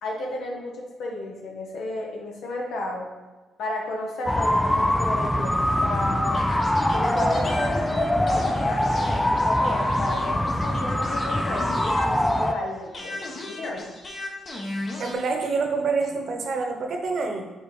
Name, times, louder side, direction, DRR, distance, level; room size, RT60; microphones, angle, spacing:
voice 1, 0.0-3.1 3.6-6.4 6.9-13.2 13.5-13.9, left 2 dB, 75° left, 0 dB, 0.9 m, -33 dB
sound 1, 4.3-12.5, left 1 dB, 10° left, 0.4 m, -23 dB
sound 2, 6.3-12.6 12.9-15.1, left 1 dB, 40° left, 1.0 m, -36 dB
voice 2, 14.7-17.4, right 4 dB, 60° right, 4 dB, 1.0 m, -27 dB
5.4 x 3.7 x 4.8 m, 1.2 s
cardioid pair, 90°, 0 cm